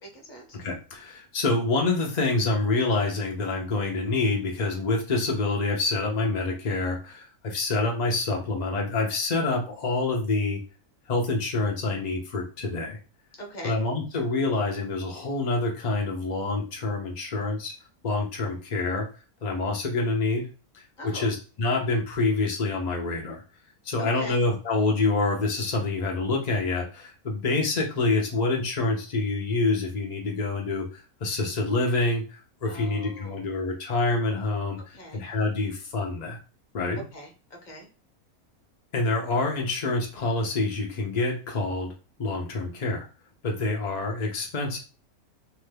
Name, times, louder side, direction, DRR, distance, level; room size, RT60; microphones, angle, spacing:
voice 1, 0.0-0.6 13.4-13.8 21.0-21.3 24.0-24.4 32.6-33.5 34.9-35.2 37.1-37.9, equal, 40° left, 1 dB, 0.7 m, -41 dB
voice 2, 0.5-10.6 11.1-13.0 13.6-17.7 18.0-19.1 19.4-20.5 21.0-23.4 23.8-36.4 36.7-37.0 38.9-41.9 42.2-43.1 43.4-44.8, left 3 dB, 80° left, 1 dB, 0.3 m, -27 dB
2.9 x 2.2 x 3.2 m, 0.33 s
omnidirectional pair, 1.6 m